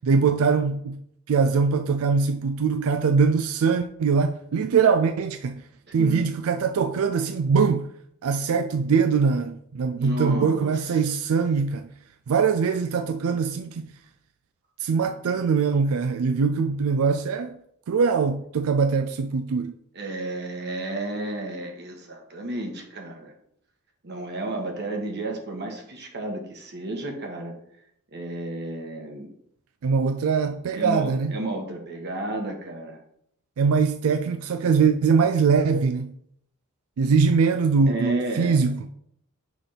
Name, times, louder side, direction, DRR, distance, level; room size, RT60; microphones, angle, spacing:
voice 1, 0.0-1.0 1.3-5.6 5.9-7.9 8.2-11.9 12.3-13.9 14.8-17.6 17.9-19.7 29.8-31.3 33.6-36.1 37.0-38.8, right 5 dB, 70° right, 0.4 m, -22 dB
voice 2, 10.0-10.8 19.9-23.3 24.0-27.5 28.1-29.3 30.5-33.0 37.9-38.6, right 1 dB, 50° right, 1.3 m, -32 dB
6.2 x 3.4 x 5.7 m
head